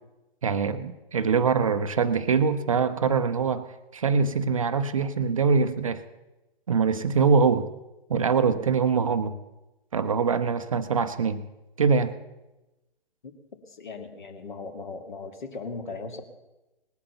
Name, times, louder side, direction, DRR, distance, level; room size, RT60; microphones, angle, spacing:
voice 1, 0.4-3.7 3.9-6.0 6.7-7.7 8.1-9.4 9.9-11.4 11.8-12.1, right 5 dB, 35° right, 11 dB, 0.6 m, -23 dB
voice 2, 13.7-16.2, left 4 dB, 50° left, 6 dB, 2.1 m, -38 dB
19.0 x 8.6 x 6.8 m, 1.0 s
figure-of-eight pair, 130°, 30 cm